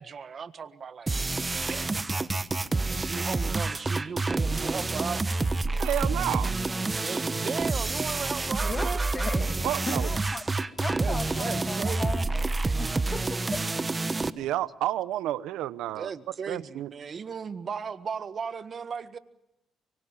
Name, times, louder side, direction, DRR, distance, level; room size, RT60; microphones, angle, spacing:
voice 1, 0.0-2.3 2.9-5.2 6.9-9.0 11.0-12.8 16.0-19.2, right 6 dB, 50° right, 11 dB, 1.6 m, -37 dB
sound 1, 1.1-14.3, right 3 dB, 25° right, 1.2 m, -28 dB
voice 2, 5.8-6.5 9.6-10.1 14.3-16.1 16.5-16.9, right 13 dB, 90° right, 17 dB, 0.8 m, -30 dB
voice 3, 8.6-12.5 12.8-14.2, left 3 dB, 35° left, 9 dB, 1.4 m, -38 dB
24.5 x 23.5 x 7.4 m, 0.84 s
cardioid pair, 75°, 0 cm